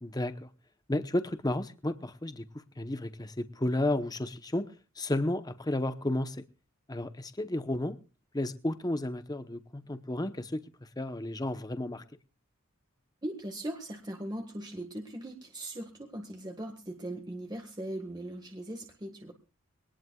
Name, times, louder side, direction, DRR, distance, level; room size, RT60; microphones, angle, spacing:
voice 1, 0.0-0.5 0.9-2.4 2.8-4.7 5.0-6.4 6.9-8.0 8.3-10.6 11.0-12.0, left 1 dB, 20° left, 0.8 m, -32 dB
voice 2, 13.2-19.3, right 1 dB, 20° right, 1.6 m, -39 dB
23.5 x 19.0 x 2.3 m
head